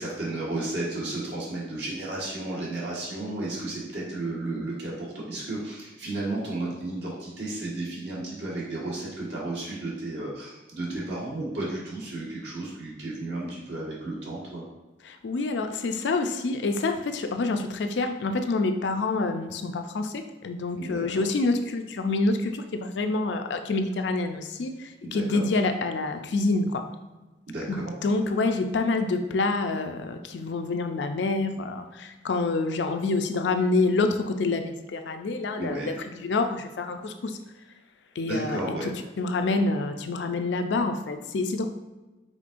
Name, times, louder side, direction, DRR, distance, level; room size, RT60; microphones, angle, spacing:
voice 1, 0.0-14.6 20.8-21.2 25.0-25.4 27.5-27.9 35.6-35.9 38.2-38.9, right 2 dB, 75° right, -6 dB, 1.4 m, -33 dB
voice 2, 15.1-26.9 27.7-37.4 38.2-38.6 39.2-41.6, left 3 dB, 80° left, 6 dB, 0.4 m, -27 dB
5.1 x 3.6 x 2.5 m, 1.1 s
head